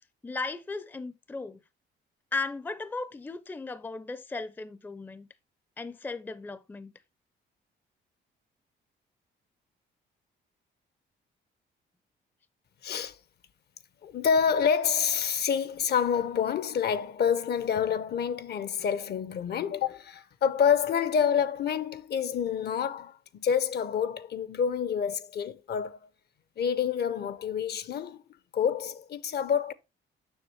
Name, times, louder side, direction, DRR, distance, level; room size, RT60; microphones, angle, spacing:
voice 1, 0.2-1.6 2.3-5.3 5.8-6.9, left 3 dB, 10° left, 0.4 m, -36 dB
voice 2, 12.8-13.2 14.0-26.0 26.6-28.2 28.5-29.7, left 7 dB, 55° left, 0.6 m, -27 dB
7.2 x 6.1 x 3.0 m
cardioid pair, 90°, 20 cm